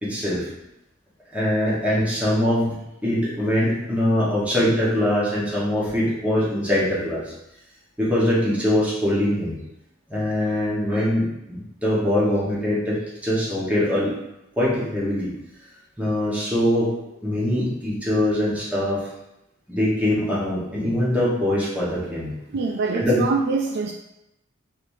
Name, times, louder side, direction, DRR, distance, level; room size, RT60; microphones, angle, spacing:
voice 1, 0.0-0.5 1.3-2.8 3.0-7.3 8.0-9.6 10.1-14.1 14.6-15.3 16.0-16.9 17.2-19.1 19.7-22.3 22.9-23.2, left 1 dB, 5° right, -7 dB, 1.2 m, -22 dB
voice 2, 22.5-23.9, right 4 dB, 50° right, 1 dB, 0.3 m, -24 dB
5.2 x 3.4 x 2.7 m, 0.87 s
head